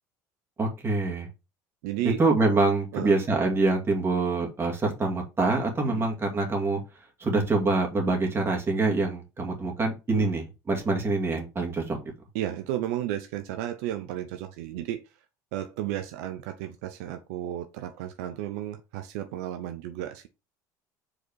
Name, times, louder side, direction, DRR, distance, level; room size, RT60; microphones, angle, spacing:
voice 1, 0.6-1.3 2.2-6.8 7.2-12.1, right 3 dB, 30° right, 2.3 m, -25 dB
voice 2, 1.8-2.2 2.9-3.1 5.9-6.1 10.1-10.3 12.3-15.0 15.5-20.3, right 12 dB, 80° right, 0.6 m, -33 dB
5.0 x 4.1 x 4.6 m
supercardioid pair, 85°, 8 cm